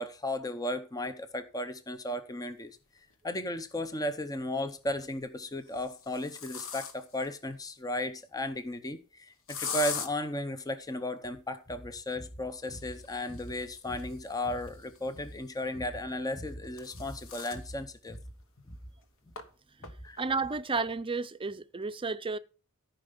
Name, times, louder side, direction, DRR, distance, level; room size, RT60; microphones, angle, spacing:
voice 1, 0.0-2.8 3.2-18.2 18.7-18.8 19.8-20.2, left 1 dB, 15° left, 0.7 m, -35 dB
sound 1, 3.1-3.2 4.7-5.1 5.7-7.3 9.5-10.1 12.7-15.3 16.3-17.7 18.1-18.2 18.6-18.7 19.4-19.5 19.8-20.2, left 6 dB, 65° left, 1.4 m, -41 dB
voice 2, 20.2-22.4, right 4 dB, 25° right, 0.6 m, -32 dB
14.0 x 5.5 x 5.2 m
head